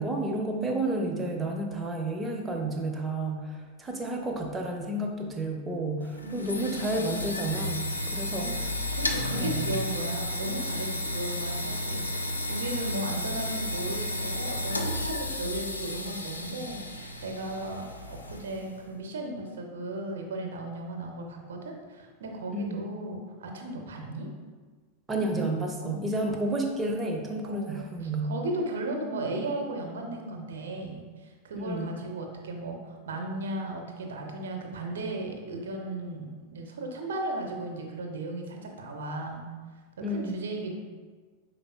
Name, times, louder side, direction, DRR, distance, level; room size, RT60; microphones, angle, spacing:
voice 1, 0.0-8.8 9.3-9.7 22.5-22.8 25.1-28.3 31.6-31.9 40.0-40.5, right 2 dB, 15° right, 2 dB, 0.6 m, -31 dB
sound 1, 6.0-18.8, left 1 dB, 80° left, 0.4 m, -33 dB
voice 2, 6.2-6.9 8.3-8.6 9.0-24.3 25.8-26.0 26.3-26.5 27.4-39.5 40.0-40.8, right 1 dB, 65° right, 3 dB, 0.6 m, -36 dB
5.2 x 3.8 x 2.3 m, 1.4 s
figure-of-eight pair, 90°, 0 cm